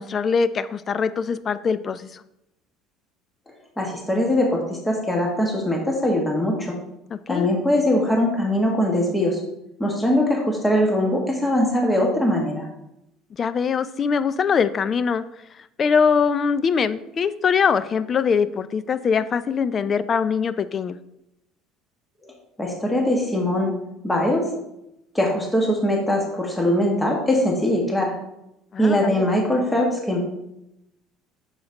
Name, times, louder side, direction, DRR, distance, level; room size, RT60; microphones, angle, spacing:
voice 1, 0.0-2.2 7.1-7.5 13.4-15.2 15.8-21.0 28.7-29.3, left 6 dB, 40° left, 15 dB, 0.4 m, -22 dB
voice 2, 3.8-6.8 7.3-9.4 9.8-12.6 22.2-22.3 22.6-23.7 24.0-24.5 25.1-28.1 28.8-30.2, left 1 dB, 10° left, -1 dB, 1.6 m, -21 dB
6.5 x 6.3 x 2.9 m, 0.85 s
supercardioid pair, 85°, 0 cm